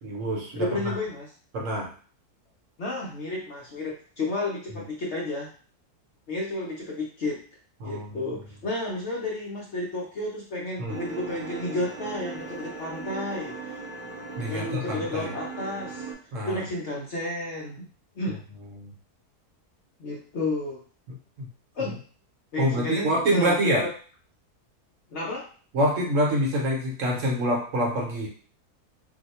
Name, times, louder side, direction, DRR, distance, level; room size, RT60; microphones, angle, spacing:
voice 1, 0.0-0.9 1.5-1.9 7.8-8.3 10.8-11.0 14.4-15.3 16.3-16.6 18.8-18.9 21.4-21.5 22.6-23.8 25.7-28.3, equal, 60° right, -1 dB, 1.0 m, -26 dB
voice 2, 0.6-1.3 2.8-5.5 6.3-7.4 7.8-13.8 14.5-16.1 16.5-17.9 18.1-18.4 20.0-20.8 21.7-22.0 22.5-23.9 25.1-25.5, left 2 dB, 60° left, -3 dB, 0.7 m, -31 dB
sound 1, 10.9-16.1, right 4 dB, 40° right, 0.8 m, -38 dB
2.7 x 2.1 x 4.0 m, 0.42 s
omnidirectional pair, 1.7 m